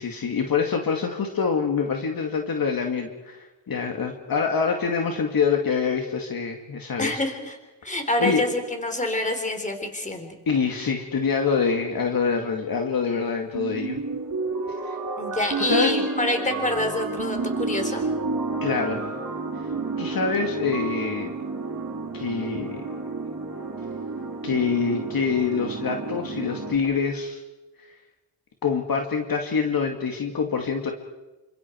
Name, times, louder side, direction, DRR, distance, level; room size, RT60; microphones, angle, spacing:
voice 1, 0.0-7.2 8.2-8.4 10.5-14.0 14.8-15.0 15.6-15.9 18.6-19.2 20.0-21.3 22.1-22.8 24.4-27.4 28.6-30.9, left 5 dB, 50° left, 3 dB, 2.4 m, -25 dB
voice 2, 7.0-7.6 7.8-10.3 15.2-18.0, left 1 dB, 15° left, 5 dB, 4.1 m, -27 dB
sound 1, 13.5-26.8, right 3 dB, 40° right, 5.3 m, -30 dB
28.5 x 26.0 x 4.7 m, 1.1 s
cardioid pair, 105°, 46 cm